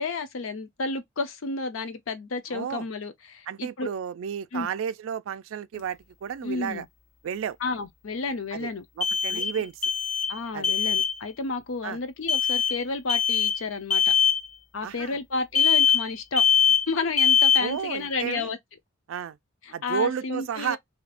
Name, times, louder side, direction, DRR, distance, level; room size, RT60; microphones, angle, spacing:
voice 1, 0.0-3.9 4.5-4.7 6.4-6.8 7.6-8.8 9.3-9.4 10.3-14.0 14.7-16.4 16.9-18.6 19.7-20.8, left 3 dB, 80° left, 0.6 m, -31 dB
voice 2, 2.5-2.9 3.5-6.9 7.2-7.6 8.5-8.7 9.0-9.8 10.5-10.7 11.8-12.0 14.8-15.2 17.6-18.5 19.1-19.4 19.7-20.8, right 8 dB, 75° right, 0.3 m, -32 dB
sound 1, 5.7-5.8 9.0-9.6 9.8-10.4 10.6-11.1 12.3-12.8 13.1-13.6 13.9-14.4 15.5-16.1 16.4-16.9 17.2-17.7, left 8 dB, 40° left, 0.4 m, -22 dB
2.7 x 2.4 x 3.3 m
head